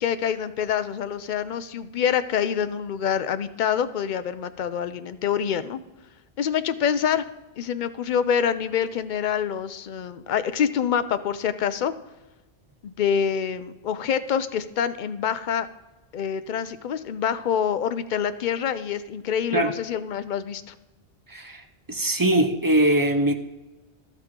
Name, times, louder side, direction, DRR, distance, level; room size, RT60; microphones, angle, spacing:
voice 1, 0.0-5.8 6.4-7.2 7.6-11.9 12.8-15.7 16.1-20.7, left 8 dB, 55° left, 12 dB, 0.6 m, -26 dB
voice 2, 21.3-21.6 21.9-23.3, right 1 dB, 25° right, 5 dB, 0.6 m, -21 dB
13.0 x 7.5 x 3.7 m, 1.1 s
omnidirectional pair, 1.1 m